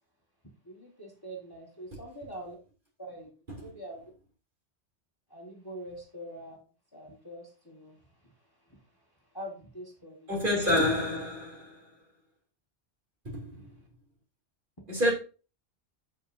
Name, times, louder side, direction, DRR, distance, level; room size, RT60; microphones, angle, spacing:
voice 1, 0.6-2.6 3.0-3.3 3.6-4.1 5.3-6.6 6.9-8.3 8.7-8.8 9.3-10.3 13.5-13.7, right 1 dB, 20° left, 1.6 m, -44 dB
voice 2, 10.3-11.8 13.2-13.6 14.9-15.1, left 1 dB, 50° right, 3.3 m, -27 dB
8.5 x 7.2 x 2.7 m
omnidirectional pair, 1.1 m